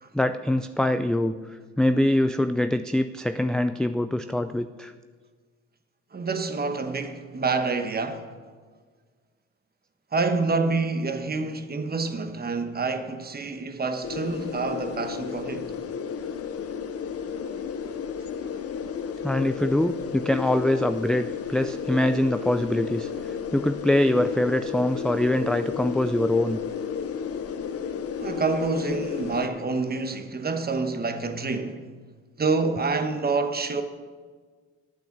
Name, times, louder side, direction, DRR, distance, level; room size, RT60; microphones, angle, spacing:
voice 1, 0.1-4.9 19.2-26.6, left 1 dB, ahead, 0.3 m, -24 dB
voice 2, 6.1-8.3 10.1-15.7 28.2-31.9 32.4-33.8, right 4 dB, 30° right, 1.2 m, -27 dB
sound 1, 14.0-29.5, left 7 dB, 50° left, 0.9 m, -33 dB
9.0 x 8.9 x 7.3 m
cardioid pair, 90°, 30 cm